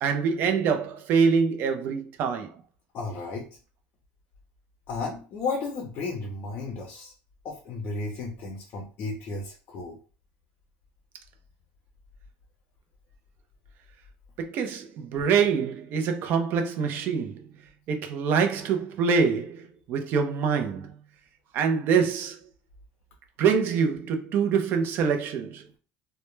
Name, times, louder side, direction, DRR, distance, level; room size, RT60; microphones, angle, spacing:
voice 1, 0.0-2.5 14.4-17.5 17.9-21.0 21.5-22.4 23.4-25.6, right 6 dB, 50° right, 0.5 m, -25 dB
voice 2, 2.9-3.4 4.9-7.1 7.4-10.0, left 3 dB, 45° left, 0.5 m, -33 dB
2.1 x 2.1 x 3.0 m
cardioid pair, 155°, 5 cm